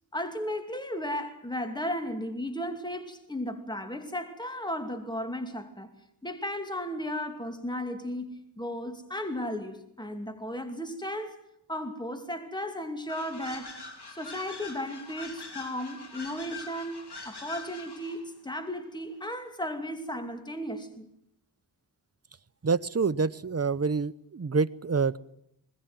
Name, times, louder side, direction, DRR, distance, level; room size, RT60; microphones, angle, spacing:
voice 1, 0.1-5.9 6.2-11.4 11.7-13.8 14.1-17.0 17.2-21.1, equal, 10° left, 2.7 m, -35 dB
sound 1, 13.1-18.2, left 4 dB, 70° left, 3.8 m, -43 dB
voice 2, 22.6-25.2, right 5 dB, 35° right, 0.9 m, -27 dB
21.5 x 18.0 x 9.3 m
wide cardioid pair, 60°, 41 cm